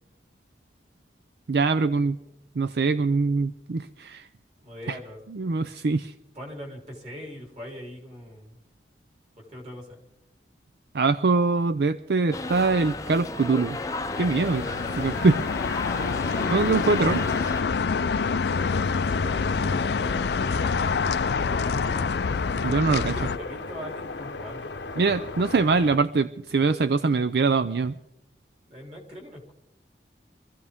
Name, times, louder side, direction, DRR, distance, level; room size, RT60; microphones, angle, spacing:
voice 1, 1.5-2.2 2.6-4.3 4.9-5.0 5.3-6.1 10.9-13.8 14.2-14.6 14.9-15.4 16.5-17.2 22.6-23.1 25.0-27.9, right 4 dB, 65° right, 12 dB, 0.5 m, -23 dB
voice 2, 4.6-5.2 6.3-8.6 9.5-10.0 15.8-16.7 18.5-22.1 23.1-24.8 28.6-29.5, equal, 35° right, 0 dB, 3.8 m, -42 dB
sound 1, 12.3-17.6, left 2 dB, 20° left, 0.6 m, -34 dB
sound 2, 13.6-23.4, left 5 dB, 70° left, 0.5 m, -27 dB
Ambience of what a drowning victim might hear, 18.5-26.0, left 3 dB, 90° left, 0.9 m, -37 dB
24.0 x 15.0 x 3.6 m, 0.85 s
head